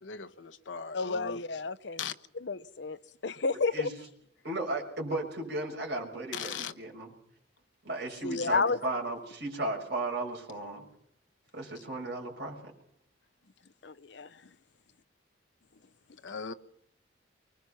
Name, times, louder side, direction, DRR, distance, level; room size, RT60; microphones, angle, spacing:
voice 1, 0.0-1.4 2.0-2.1 6.3-6.7 16.2-16.5, left 6 dB, 80° left, 1.1 m, -38 dB
voice 2, 0.9-2.0 2.4-3.0 3.2-3.9 8.2-8.8 13.8-14.3, left 4 dB, 65° left, 0.8 m, -31 dB
voice 3, 4.4-7.1 7.8-10.8 11.5-12.7, right 2 dB, 55° right, 6.4 m, -35 dB
24.5 x 20.0 x 5.8 m
head